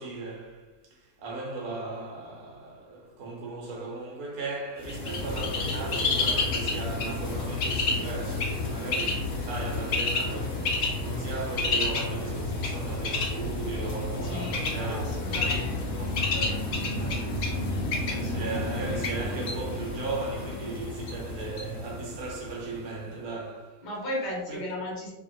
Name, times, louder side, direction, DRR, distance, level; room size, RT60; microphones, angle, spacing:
voice 1, 0.0-15.7 16.0-17.6 18.1-23.9 24.5-24.6, right 3 dB, 65° right, 1.2 m, -37 dB
Bird, 4.8-22.6, left 3 dB, 80° left, 0.5 m, -30 dB
voice 2, 14.2-15.8 18.2-18.9 23.8-25.1, left 1 dB, 35° left, 0.8 m, -36 dB
2.8 x 2.6 x 2.5 m
omnidirectional pair, 1.8 m